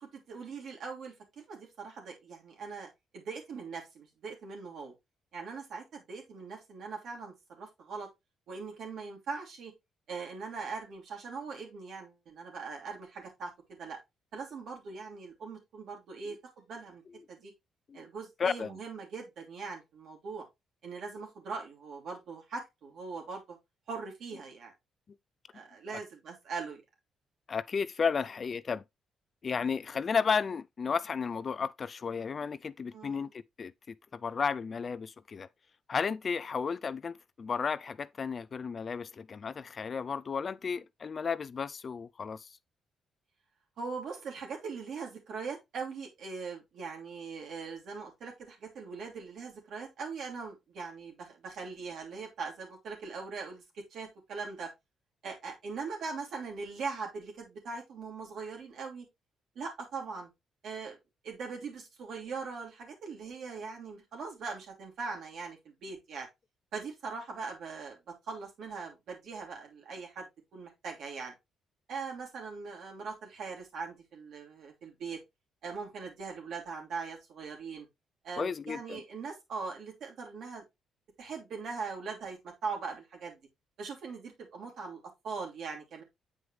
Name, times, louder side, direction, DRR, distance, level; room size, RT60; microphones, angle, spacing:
voice 1, 0.0-4.9 5.3-8.1 8.5-9.7 10.1-14.0 14.3-17.0 17.3-17.5 17.9-20.4 20.8-23.6 23.9-24.7 25.5-26.8 32.9-33.3 43.8-54.7 55.2-59.0 59.5-60.3 60.6-61.0 61.2-66.3 66.7-70.3 70.5-71.3 71.9-75.2 75.6-77.9 78.2-80.6 81.2-83.4 83.8-86.0, right 4 dB, 70° right, 2.8 m, -41 dB
voice 2, 18.4-18.7 27.5-28.8 29.4-35.5 35.9-42.5 78.4-79.0, left 6 dB, 45° left, 0.3 m, -33 dB
7.9 x 4.7 x 3.1 m
cardioid pair, 90°, 0 cm